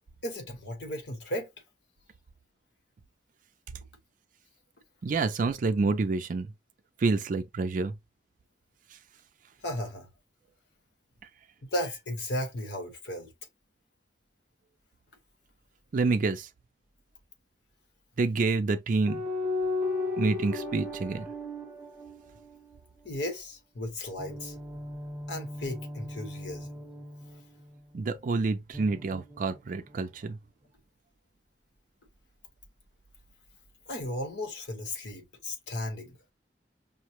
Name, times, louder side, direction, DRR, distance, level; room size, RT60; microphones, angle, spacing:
voice 1, 0.2-1.5 9.6-10.1 11.7-13.3 23.0-24.5 25.3-26.8 33.9-36.2, left 1 dB, 70° left, 1.1 m, -35 dB
voice 2, 5.0-6.5 7.0-7.9 15.9-16.5 18.2-19.2 20.2-21.3 27.9-30.4, right 3 dB, 50° right, 0.4 m, -28 dB
sound 1, 19.1-22.8 24.2-27.9 28.7-30.0, left 2 dB, 5° right, 0.8 m, -36 dB
5.6 x 2.1 x 2.9 m
head